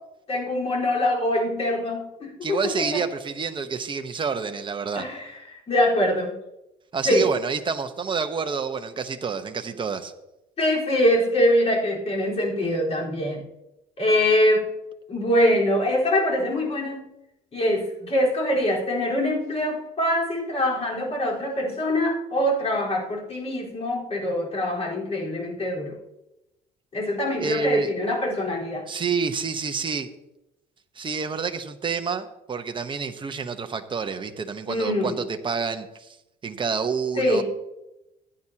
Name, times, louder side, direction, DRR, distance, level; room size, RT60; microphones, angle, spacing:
voice 1, 0.3-3.0 4.9-6.3 7.0-7.3 10.6-13.4 14.0-14.7 15.1-17.0 17.5-26.0 26.9-28.9 34.7-35.2 37.2-37.4, left 1 dB, 40° left, -3 dB, 4.5 m, -24 dB
voice 2, 2.4-5.1 6.9-10.1 27.4-27.9 28.9-30.1 31.0-35.1 35.4-36.2 36.4-37.4, right 5 dB, 30° right, 7 dB, 1.1 m, -28 dB
15.5 x 9.9 x 2.9 m, 0.91 s
cardioid pair, 110°, 17 cm